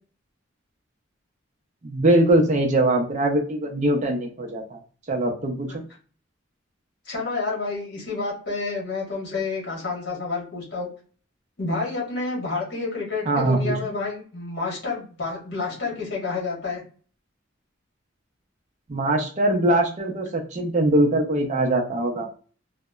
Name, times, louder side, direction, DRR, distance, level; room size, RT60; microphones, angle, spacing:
voice 1, 1.8-4.8 5.1-5.8 13.3-13.8 18.9-22.3, right 1 dB, 40° right, 3 dB, 0.5 m, -22 dB
voice 2, 7.0-10.9 11.6-16.8, left 3 dB, 60° left, -3 dB, 1.2 m, -29 dB
2.8 x 2.1 x 2.2 m, 0.39 s
head